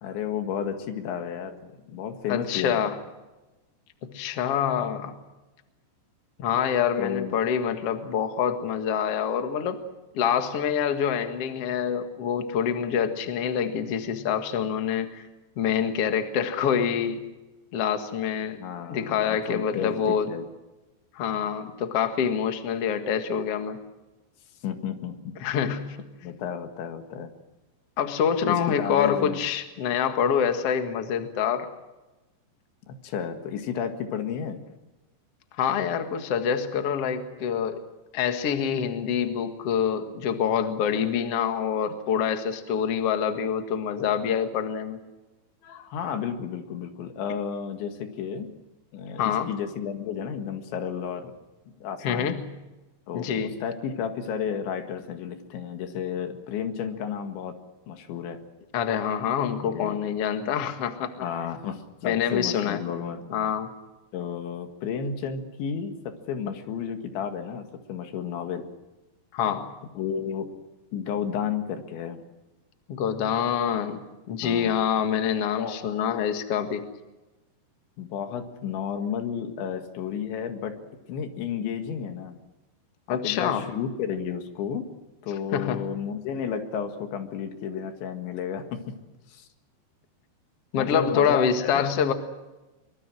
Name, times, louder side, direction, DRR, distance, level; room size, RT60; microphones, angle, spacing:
voice 1, 0.0-2.8 7.0-7.4 18.6-20.5 24.6-25.4 26.2-27.3 28.5-29.4 32.9-34.6 45.6-48.5 48.9-51.3 51.8-52.3 53.1-57.6 57.9-58.4 59.6-60.0 61.2-63.3 64.1-68.7 70.0-70.5 70.9-72.2 74.4-74.8 75.6-76.0 78.0-80.8 81.1-82.4 83.1-84.9 85.2-89.0 89.3-89.5 90.7-91.9, left 7 dB, 85° left, 6 dB, 4.2 m, -32 dB
voice 2, 2.3-3.0 4.0-5.1 6.4-9.8 10.1-15.2 15.6-17.2 17.7-18.6 18.9-20.3 21.1-23.8 25.4-26.0 28.0-31.7 35.6-37.8 38.1-45.0 49.2-49.5 52.0-52.5 53.1-53.6 58.7-61.2 62.0-62.8 63.3-63.7 69.3-69.7 72.9-76.8 83.1-83.7 85.5-85.9 90.7-92.1, left 8 dB, 50° left, 6 dB, 1.9 m, -26 dB
23.5 x 23.5 x 6.3 m, 1.1 s
omnidirectional pair, 5.1 m